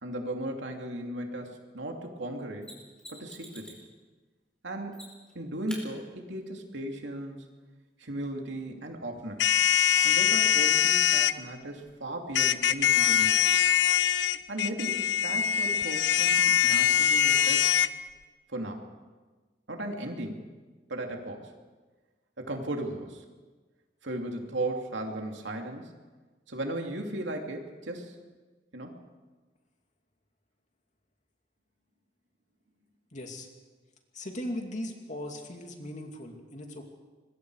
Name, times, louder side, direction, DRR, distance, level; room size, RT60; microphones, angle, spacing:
voice 1, 0.0-2.8 3.1-3.8 4.6-5.0 5.3-7.5 8.0-9.6 10.0-13.4 14.5-17.7 18.5-18.9 19.7-20.5 20.9-21.5 22.4-23.2 24.0-25.9 26.5-28.2 28.7-29.0, right 1 dB, 80° right, 2 dB, 2.8 m, -36 dB
Mechanisms, 2.6-3.9 4.9-5.3 5.7-5.8 8.6-8.7, equal, 5° left, 4.8 m, -46 dB
sound 1, 9.4-11.3 12.4-17.9, left 9 dB, 75° left, 0.7 m, -23 dB
voice 2, 33.1-33.5 34.1-36.8, left 1 dB, 45° left, 3 dB, 2.7 m, -38 dB
25.0 x 21.5 x 4.9 m, 1.3 s
head